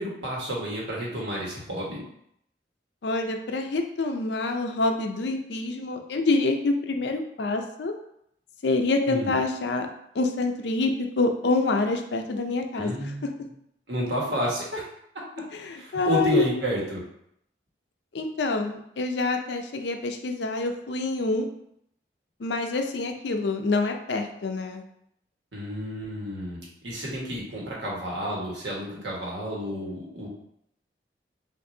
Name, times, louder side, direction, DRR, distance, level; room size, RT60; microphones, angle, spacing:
voice 1, 0.0-2.0 9.1-9.3 12.7-13.3 13.9-14.8 15.7-17.0 25.5-26.6 26.8-30.3, equal, 80° right, -4 dB, 1.4 m, -30 dB
voice 2, 3.0-7.9 8.6-9.9 10.2-12.9 15.5-16.5 18.1-21.5 22.4-24.8, left 3 dB, 80° left, 5 dB, 0.5 m, -26 dB
6.0 x 2.6 x 2.7 m, 0.73 s
head